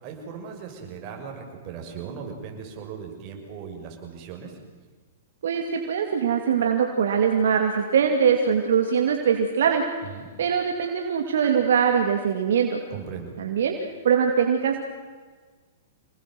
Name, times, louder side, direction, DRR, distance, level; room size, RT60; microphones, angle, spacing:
voice 1, 0.0-4.6 10.0-10.3 12.9-13.3, right 6 dB, 40° right, 2 dB, 6.5 m, -38 dB
voice 2, 5.4-9.8 10.4-12.8 13.4-13.7 14.0-14.8, right 7 dB, 70° right, 3 dB, 2.7 m, -22 dB
27.5 x 20.0 x 7.9 m, 1.5 s
hypercardioid pair, 120°, 0 cm